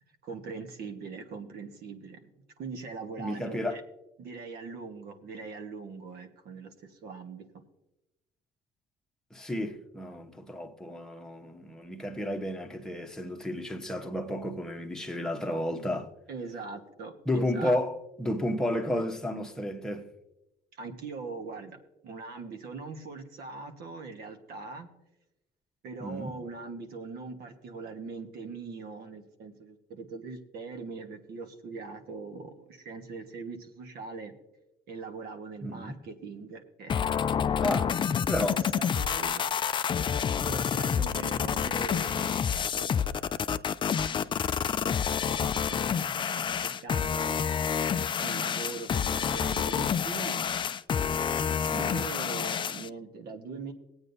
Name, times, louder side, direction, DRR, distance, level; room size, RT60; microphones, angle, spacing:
voice 1, 0.2-2.3 2.6-3.8 4.2-7.5 16.3-17.8 20.8-24.9 25.8-34.3 34.9-37.1 38.8-39.9 40.5-43.2 44.6-47.4 48.2-50.5 51.7-53.7, right 4 dB, 65° right, 1.5 m, -41 dB
voice 2, 3.2-3.8 9.3-16.1 17.3-20.1 26.0-26.4 35.6-36.0 37.6-37.9 38.3-38.6 51.7-52.1, left 1 dB, 5° left, 1.1 m, -32 dB
sound 1, 36.9-52.9, left 7 dB, 30° left, 0.3 m, -28 dB
19.5 x 8.7 x 2.7 m
cardioid pair, 110°, 17 cm